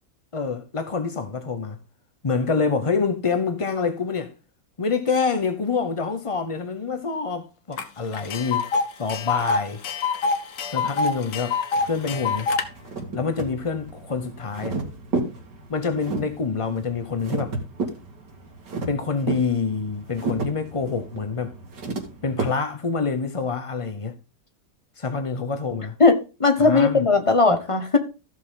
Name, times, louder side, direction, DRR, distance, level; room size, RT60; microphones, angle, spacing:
voice 1, 0.3-1.8 2.2-4.3 4.8-8.7 9.0-9.8 10.7-11.6 11.8-12.5 13.1-14.8 15.7-17.6 18.9-21.5 22.2-24.2 25.0-25.9 26.6-27.0, left 5 dB, 40° left, 0.5 m, -26 dB
Tick, 7.8-7.9 8.1-12.6, left 4 dB, 85° left, 1.8 m, -25 dB
sound 1, 11.8-22.4, right 3 dB, 80° right, 2.8 m, -33 dB
voice 2, 26.0-28.0, left 3 dB, 20° left, 1.2 m, -18 dB
14.5 x 6.3 x 3.7 m
omnidirectional pair, 1.8 m